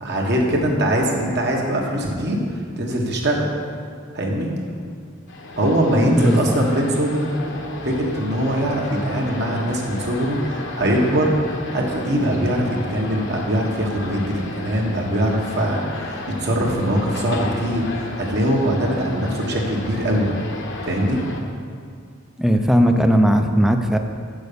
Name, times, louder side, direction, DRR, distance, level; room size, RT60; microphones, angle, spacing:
voice 1, 0.0-2.4 2.8-3.5 4.1-4.5 5.6-7.3 7.8-20.3 20.8-21.2, right 1 dB, 55° right, -1 dB, 1.5 m, -22 dB
sound 1, 5.3-21.4, left 2 dB, 60° left, 1.0 m, -34 dB
voice 2, 22.4-24.0, equal, ahead, 5 dB, 0.5 m, -17 dB
7.7 x 6.4 x 6.9 m, 2.1 s
head